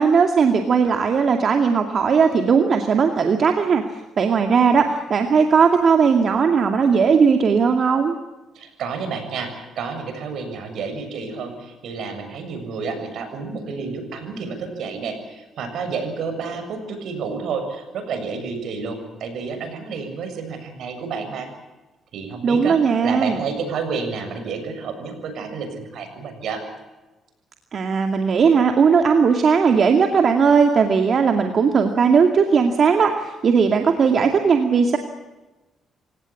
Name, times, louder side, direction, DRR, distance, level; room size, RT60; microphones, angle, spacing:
voice 1, 0.0-3.8 4.2-8.1 22.4-23.4 27.7-35.0, right 5 dB, 50° right, 5 dB, 2.4 m, -17 dB
voice 2, 8.5-21.5 22.1-26.6, right 5 dB, 70° right, 7 dB, 7.2 m, -30 dB
27.5 x 17.5 x 8.5 m, 1.1 s
cardioid pair, 90°, 0 cm